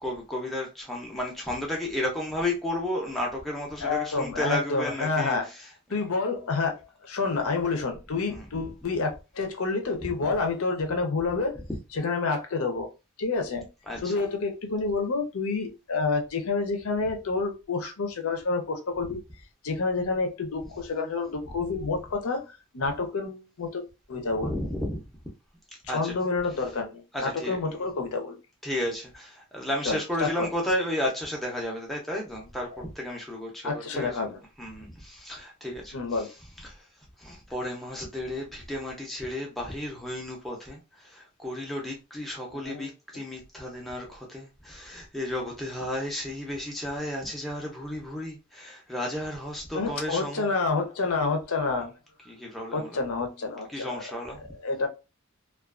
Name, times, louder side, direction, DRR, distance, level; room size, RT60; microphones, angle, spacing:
voice 1, 0.0-5.7 7.2-7.4 8.3-8.7 10.0-10.1 13.9-14.3 21.8-21.9 24.4-25.1 25.9-26.1 27.1-27.8 28.6-34.2 34.6-36.3 36.6-36.9 37.2-50.5 52.3-53.0 53.7-54.4, left 1 dB, ahead, 0.5 m, -33 dB
voice 2, 3.8-5.5 5.9-6.8 7.0-11.6 11.9-12.9 13.2-13.7 14.0-19.2 19.6-22.5 22.7-23.8 24.1-24.5 25.9-28.4 29.9-30.5 32.7-32.8 33.6-34.4 35.9-36.3 42.5-42.9 49.7-51.9 52.7-54.0 54.6-54.9, left 4 dB, 85° left, 0.6 m, -28 dB
2.4 x 2.3 x 2.3 m
head